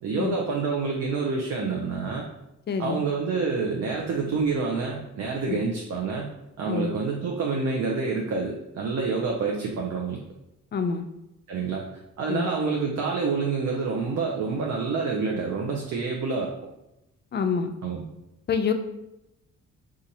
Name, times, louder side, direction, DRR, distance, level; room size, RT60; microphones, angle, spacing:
voice 1, 0.0-2.3 2.8-6.3 6.6-10.2 11.5-11.8 12.2-16.5 17.8-18.0, right 4 dB, 60° right, -1 dB, 0.6 m, -27 dB
voice 2, 2.7-3.0 5.5-5.6 6.6-7.0 10.7-11.1 12.3-12.5 17.3-17.7 18.5-18.7, left 6 dB, 35° left, 6 dB, 0.4 m, -27 dB
3.9 x 2.4 x 2.8 m, 0.89 s
cardioid pair, 90°, 30 cm